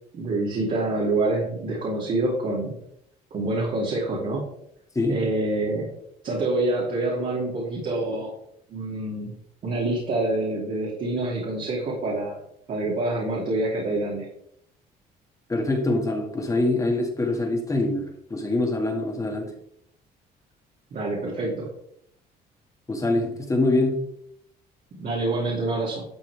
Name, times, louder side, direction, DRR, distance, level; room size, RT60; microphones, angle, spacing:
voice 1, 0.1-2.7 3.3-4.4 5.1-5.9 6.2-8.3 8.7-9.3 9.6-12.4 12.7-14.3 20.9-21.7 25.0-26.0, right 2 dB, 50° right, -5 dB, 3.2 m, -26 dB
voice 2, 15.5-19.5 22.9-24.0, left 2 dB, 20° left, 2 dB, 2.3 m, -24 dB
12.0 x 6.0 x 3.6 m, 0.72 s
cardioid pair, 110°, 17 cm